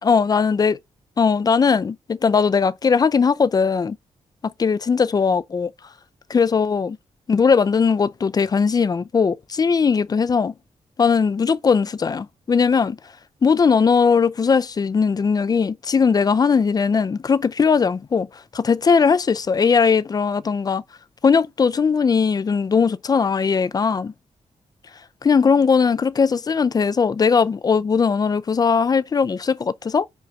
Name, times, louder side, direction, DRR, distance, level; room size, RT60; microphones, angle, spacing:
voice 1, 0.0-0.8 1.2-4.0 4.6-5.7 6.3-7.0 7.3-10.5 11.0-13.0 13.4-18.3 18.5-20.8 21.2-24.1 25.2-30.1, left 5 dB, 35° left, 0.4 m, -19 dB
5.4 x 5.0 x 4.5 m
wide cardioid pair, 125°, 12 cm